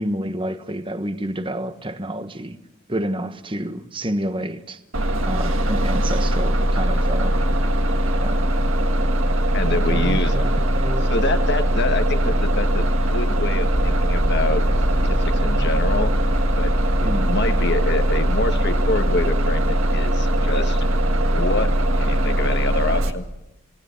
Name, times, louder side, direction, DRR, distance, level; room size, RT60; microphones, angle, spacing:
voice 1, 0.0-2.6 2.9-4.8 5.3-7.4 8.2-8.5 9.7-11.1 17.0-17.3, right 1 dB, 20° right, 10 dB, 1.2 m, -29 dB
Bus, 4.9-23.1, equal, 60° right, 1.8 m, -20 dB
voice 2, 9.5-10.5 11.0-14.6 15.0-16.1 16.6-16.7 17.0-20.9 21.2-23.3, left 2 dB, 50° left, 8 dB, 1.6 m, -26 dB
sound 1, 13.7-19.8, equal, 20° left, 2.5 m, -31 dB
28.5 x 18.5 x 7.0 m, 0.92 s
head